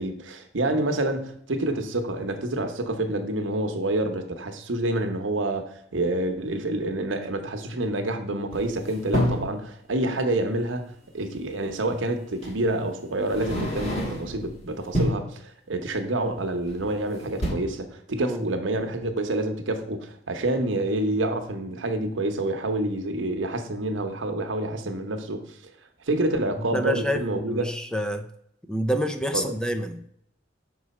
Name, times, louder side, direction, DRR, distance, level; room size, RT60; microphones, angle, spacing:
voice 1, 0.0-25.4 26.1-27.8 29.3-29.5, right 1 dB, 85° right, 6 dB, 0.9 m, -28 dB
sound 1, 8.5-9.6 11.2-11.3 12.4-12.6 13.2-14.4 14.8-15.3 16.6-17.0 17.3-17.5, left 1 dB, 35° left, 1.8 m, -28 dB
voice 2, 26.7-28.3 28.7-30.1, equal, 5° left, 7 dB, 0.4 m, -28 dB
6.1 x 4.8 x 4.2 m, 0.68 s
head